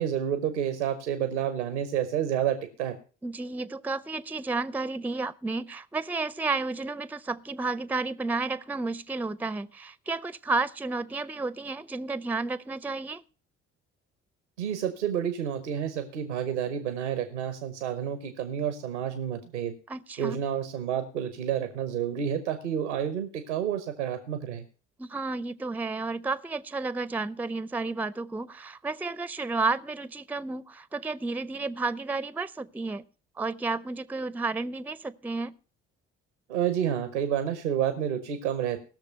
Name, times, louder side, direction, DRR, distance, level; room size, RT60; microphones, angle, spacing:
voice 1, 0.0-3.0 14.6-19.8 20.2-24.6 36.5-38.8, right 9 dB, 85° right, 0.9 m, -29 dB
voice 2, 3.2-13.2 19.9-20.4 25.0-33.0 33.4-35.5, right 3 dB, 5° right, 0.5 m, -32 dB
17.5 x 6.5 x 5.5 m
figure-of-eight pair, 45°, 34 cm